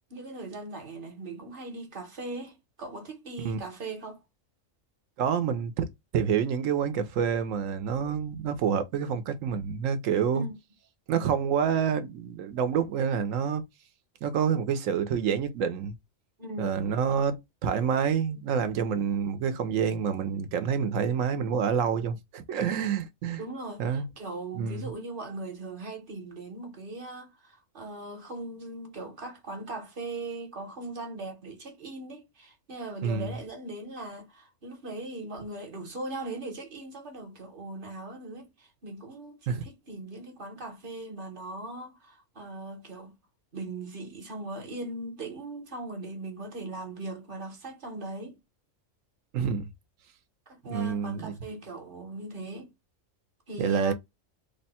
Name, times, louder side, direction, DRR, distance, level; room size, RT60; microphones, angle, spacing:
voice 1, 0.1-4.2 10.3-10.6 16.4-16.8 23.4-43.1 43.5-48.4 50.5-52.7 53.5-53.9, right 2 dB, 45° right, 1.1 m, -39 dB
voice 2, 5.2-5.9 6.1-10.5 11.1-13.6 14.2-15.9 16.6-17.4 17.6-23.4 23.8-24.1 24.5-24.9 33.0-33.4 39.5-39.6 49.3-49.7 50.7-51.3 53.6-53.9, right 7 dB, 80° right, 1.0 m, -27 dB
3.3 x 2.2 x 4.1 m
omnidirectional pair, 1.3 m